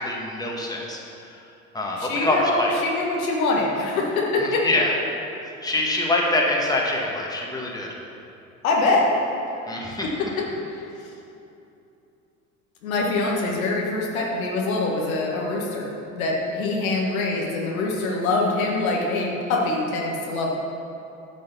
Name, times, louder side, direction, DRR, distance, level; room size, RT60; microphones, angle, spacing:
voice 1, 0.0-1.5 1.7-2.7 4.4-4.9 5.4-7.9 9.7-10.1, left 2 dB, 10° left, -2 dB, 1.8 m, -25 dB
voice 2, 2.0-4.7 8.6-9.1 10.0-10.1 10.7-10.9 12.8-15.9 16.2-20.5, left 2 dB, 75° left, -2 dB, 1.8 m, -24 dB
11.0 x 6.4 x 5.8 m, 2.8 s
hypercardioid pair, 70°, 42 cm